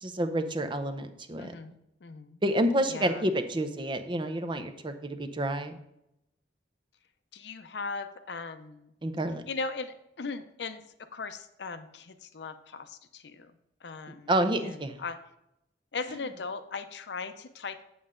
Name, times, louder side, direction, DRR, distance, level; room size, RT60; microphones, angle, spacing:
voice 1, 0.0-1.5 2.4-5.8 9.0-9.4 14.1-15.0, right 1 dB, 30° right, 8 dB, 0.7 m, -29 dB
voice 2, 1.4-1.7 2.0-2.4 2.9-3.3 7.3-8.9 9.5-13.5 13.8-14.3 14.6-15.2 15.9-17.8, left 4 dB, 70° left, 11 dB, 0.6 m, -38 dB
7.7 x 7.6 x 3.7 m, 0.84 s
head